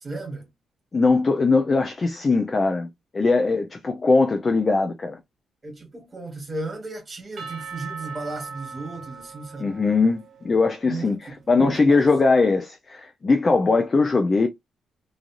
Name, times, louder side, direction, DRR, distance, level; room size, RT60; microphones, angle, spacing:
voice 1, 0.0-0.5 5.6-9.7 10.9-12.0, right 3 dB, 20° right, 1.3 m, -35 dB
voice 2, 0.9-2.9 3.1-5.2 9.6-11.2 11.5-14.5, left 3 dB, 25° left, 0.4 m, -20 dB
Percussion / Church bell, 7.4-11.3, right 5 dB, 45° right, 0.5 m, -40 dB
3.1 x 2.5 x 2.4 m
wide cardioid pair, 175°, 0 cm